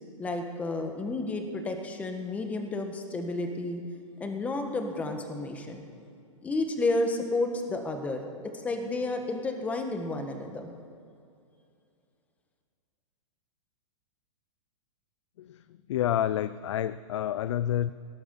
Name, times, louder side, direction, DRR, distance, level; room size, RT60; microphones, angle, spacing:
voice 1, 0.2-3.8 4.2-5.8 6.4-8.2 8.5-10.7, left 2 dB, 10° left, 5 dB, 1.3 m, -31 dB
voice 2, 15.4-17.9, left 11 dB, 60° left, 15 dB, 0.5 m, -29 dB
18.5 x 11.0 x 6.9 m, 2.5 s
hypercardioid pair, 165°, 17 cm